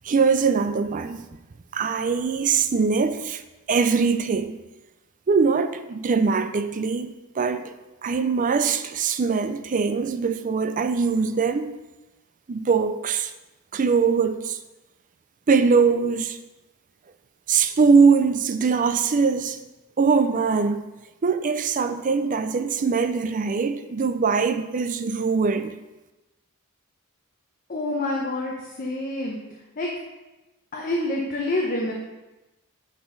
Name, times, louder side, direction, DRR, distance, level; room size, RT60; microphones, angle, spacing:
voice 1, 0.0-1.3 1.7-3.4 3.7-4.6 5.3-7.7 8.0-11.7 12.5-13.3 13.7-14.6 15.5-16.4 17.5-19.6 20.0-20.8 21.2-25.7, right 5 dB, 35° right, 0.4 m, -22 dB
voice 2, 27.7-28.5 28.8-29.4 29.8-29.9 30.7-31.9, left 2 dB, 40° left, 0.8 m, -27 dB
10.0 x 4.1 x 3.9 m
head